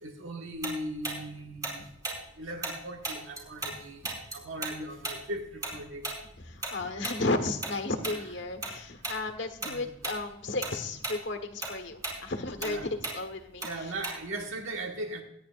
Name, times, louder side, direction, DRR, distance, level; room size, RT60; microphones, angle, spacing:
voice 1, 0.0-1.9 2.4-4.1 4.3-6.1 9.6-9.8 12.6-12.9 13.6-15.2, right 1 dB, 80° right, 3 dB, 1.6 m, -38 dB
Tick-tock, 0.6-3.8 4.0-8.7 9.0-9.2 9.6-10.2 10.5-14.4, right 2 dB, 15° right, 4.4 m, -36 dB
voice 2, 6.5-13.9, left 2 dB, 60° left, 6 dB, 1.4 m, -34 dB
23.5 x 10.0 x 2.5 m, 0.80 s
head